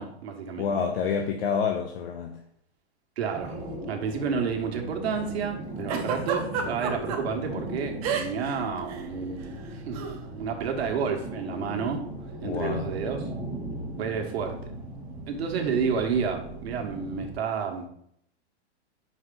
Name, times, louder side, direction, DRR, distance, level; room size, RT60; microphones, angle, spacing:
voice 1, 0.0-0.8 3.2-3.5 3.9-12.1 12.4-13.3 14.0-14.6 15.3-17.9, right 6 dB, 70° right, 3 dB, 1.3 m, -30 dB
voice 2, 0.6-2.4 12.4-12.9, left 6 dB, 60° left, 2 dB, 0.7 m, -28 dB
sound 1, 3.3-17.3, right 1 dB, ahead, 0.8 m, -38 dB
Giggle, 5.9-7.2 8.0-8.5 8.8-9.0 9.9-10.2, right 7 dB, 35° right, 0.8 m, -29 dB
5.7 x 4.8 x 3.8 m, 0.69 s
supercardioid pair, 165°, 33 cm